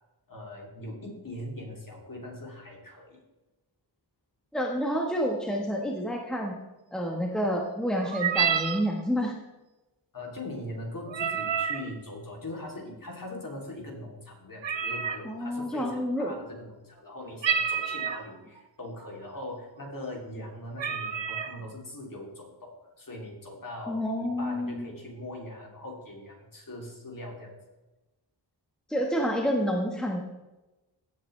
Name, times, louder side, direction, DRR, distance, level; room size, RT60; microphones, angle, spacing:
voice 1, 0.3-3.2 10.1-27.5, left 1 dB, 45° left, -1 dB, 3.2 m, -41 dB
voice 2, 4.5-6.6 6.9-9.3 15.2-16.3 23.9-24.9 28.9-30.2, equal, ahead, 0 dB, 1.4 m, -29 dB
sound 1, 8.0-8.8 11.1-11.9 14.6-15.2 17.4-18.3 19.0-19.1 19.5-19.8 20.3-20.4 20.8-21.5, right 7 dB, 70° right, 0.9 m, -28 dB
16.5 x 7.6 x 3.3 m, 1.1 s
wide cardioid pair, 90°, 45 cm